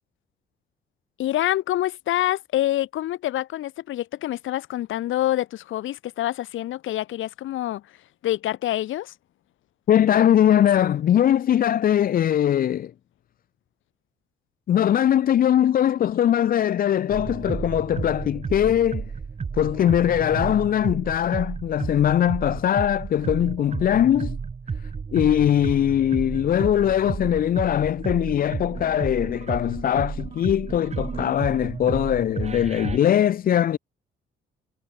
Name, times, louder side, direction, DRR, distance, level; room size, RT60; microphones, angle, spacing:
voice 1, 1.2-7.8 8.2-9.1, left 14 dB, 80° left, 2.0 m, -26 dB
voice 2, 9.9-12.9 14.7-19.0 19.6-24.4 25.1-33.8, left 10 dB, 45° left, 0.4 m, -21 dB
sound 1, 17.1-33.0, right 5 dB, 35° right, 1.8 m, -32 dB
cardioid pair, 90°, 20 cm